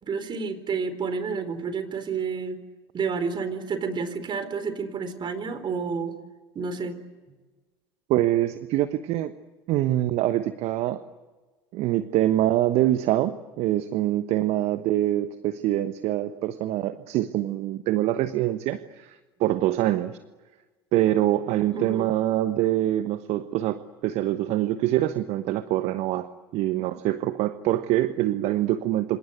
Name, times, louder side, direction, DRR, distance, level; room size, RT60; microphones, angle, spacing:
voice 1, 0.0-2.6 2.9-6.1 6.5-7.0 21.7-22.1, right 5 dB, 40° right, 11 dB, 4.2 m, -30 dB
voice 2, 8.1-9.3 9.7-11.0 11.7-20.2 20.9-26.3 26.5-29.2, right 14 dB, 55° right, 11 dB, 1.2 m, -25 dB
27.0 x 27.0 x 8.1 m, 1.3 s
hypercardioid pair, 70°, 13 cm